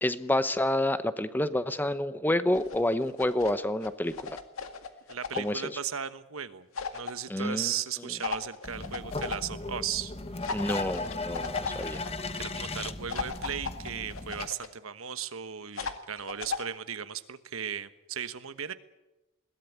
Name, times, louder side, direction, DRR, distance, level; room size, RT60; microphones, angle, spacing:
voice 1, 0.0-4.4 5.4-5.8 7.3-7.7 8.0-8.1 10.5-12.0, left 1 dB, 10° left, 12 dB, 0.8 m, -29 dB
sound 1, 2.5-3.6 3.8-5.6 6.7-7.1 8.2-9.4 10.4-12.1 13.1-14.7 15.8-16.7, left 5 dB, 90° left, 2.0 m, -36 dB
voice 2, 5.1-6.7 6.9-10.1 12.3-18.7, right 8 dB, 90° right, 11 dB, 1.2 m, -36 dB
sound 2, 8.6-14.5, left 3 dB, 30° left, 1.1 m, -37 dB
21.5 x 17.5 x 9.4 m, 0.99 s
head